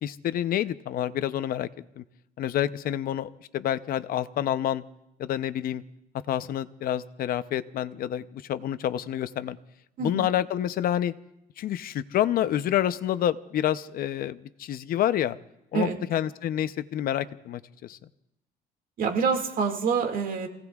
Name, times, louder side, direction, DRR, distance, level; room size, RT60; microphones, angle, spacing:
voice 1, 0.0-1.7 2.0-2.1 2.4-4.8 5.2-5.8 6.3-9.6 10.0-11.1 11.6-15.4 15.7-18.0, left 11 dB, 60° left, 13 dB, 0.7 m, -28 dB
voice 2, 19.0-20.5, right 5 dB, 55° right, 4 dB, 2.2 m, -26 dB
29.0 x 17.5 x 2.4 m, 0.86 s
cardioid pair, 110°, 17 cm